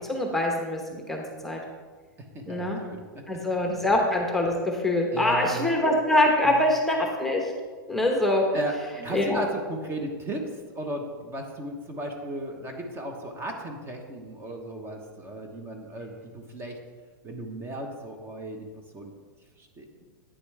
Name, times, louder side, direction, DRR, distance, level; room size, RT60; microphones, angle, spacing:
voice 1, 0.1-1.6 2.5-2.8 3.3-7.5 7.9-8.4 9.1-9.4, left 1 dB, ahead, 0 dB, 1.0 m, -24 dB
voice 2, 2.2-3.4 5.1-5.7 6.4-6.7 8.5-8.8 9.0-16.8 17.2-18.7 18.9-19.1 19.6-19.9, right 1 dB, 20° right, 3 dB, 1.0 m, -35 dB
9.3 x 6.6 x 3.3 m, 1.4 s
hypercardioid pair, 125°, 11 cm